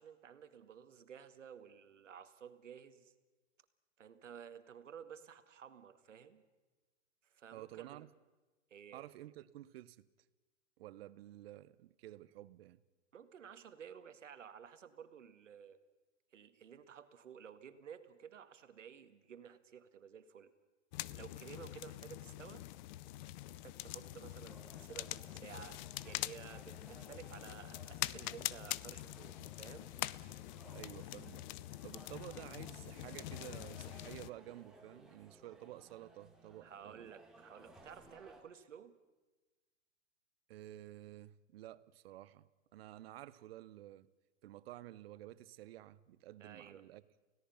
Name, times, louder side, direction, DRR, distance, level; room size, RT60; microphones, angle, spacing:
voice 1, 0.0-3.1 4.0-6.4 7.2-8.1 8.7-9.0 13.1-15.8 16.3-20.5 21.1-22.6 23.5-29.9 36.6-38.9 46.4-46.9, right 8 dB, 85° right, 1.9 m, -54 dB
voice 2, 7.5-8.1 8.9-10.1 10.8-12.8 30.7-31.5 31.8-37.1 40.5-44.1 44.4-47.0, right 14 dB, 55° right, 1.0 m, -52 dB
sound 1, 20.9-34.3, left 17 dB, 40° left, 0.6 m, -44 dB
sound 2, 24.4-38.4, right 2 dB, ahead, 3.2 m, -60 dB
29.5 x 17.5 x 5.7 m
hypercardioid pair, 125°, 36 cm